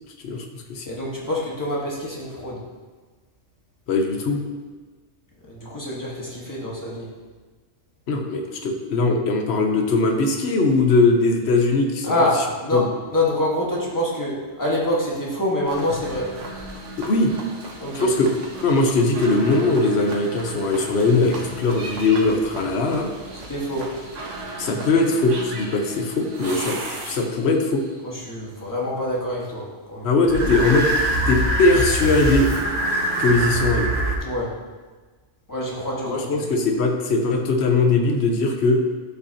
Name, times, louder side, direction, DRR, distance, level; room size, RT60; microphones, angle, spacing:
voice 1, 0.9-2.6 5.5-7.1 12.0-16.4 17.8-18.1 23.5-24.0 28.0-30.1 34.2-34.6 35.5-36.5, left 1 dB, 15° left, -5 dB, 1.7 m, -26 dB
voice 2, 3.9-4.4 8.1-12.1 12.7-12.9 17.1-17.3 18.0-18.3 18.6-23.1 24.6-27.8 30.0-30.9 31.3-32.5 33.2-33.9 36.1-38.8, left 3 dB, 65° left, 3 dB, 1.1 m, -20 dB
sound 1, 15.7-27.6 30.3-34.2, right 1 dB, 80° right, 1.6 m, -28 dB
12.5 x 5.5 x 2.9 m, 1.4 s
omnidirectional pair, 1.2 m